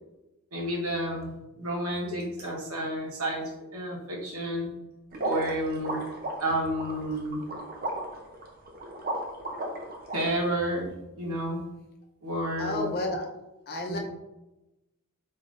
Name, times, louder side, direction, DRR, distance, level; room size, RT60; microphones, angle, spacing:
voice 1, 0.5-1.3 1.6-4.7 5.2-6.0 6.4-7.4 10.1-11.6 12.2-13.0 13.9-14.0, right 1 dB, 80° right, -2 dB, 1.1 m, -30 dB
sound 1, 5.1-10.2, right 1 dB, 45° right, 0.6 m, -34 dB
voice 2, 12.6-13.3 13.7-14.0, left 2 dB, 45° left, 1 dB, 0.7 m, -31 dB
4.3 x 3.6 x 2.5 m, 0.97 s
head